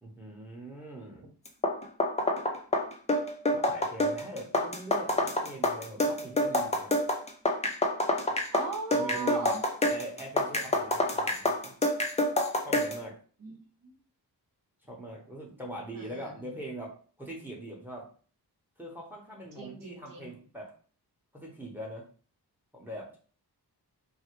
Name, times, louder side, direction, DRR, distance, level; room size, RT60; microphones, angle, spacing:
voice 1, 0.0-1.3 3.5-6.9 8.9-9.5 9.9-11.7 12.6-13.2 14.9-18.1 18.8-20.7 21.3-22.0 22.7-23.2, right 1 dB, 5° right, -3 dB, 0.8 m, -42 dB
sound 1, 1.5-13.0, left 1 dB, 15° left, 0.4 m, -27 dB
voice 2, 8.5-9.6 13.4-14.0 15.9-16.6 19.6-20.4, right 4 dB, 55° right, 3 dB, 0.8 m, -39 dB
3.2 x 2.1 x 3.0 m, 0.41 s
wide cardioid pair, 130°, 40 cm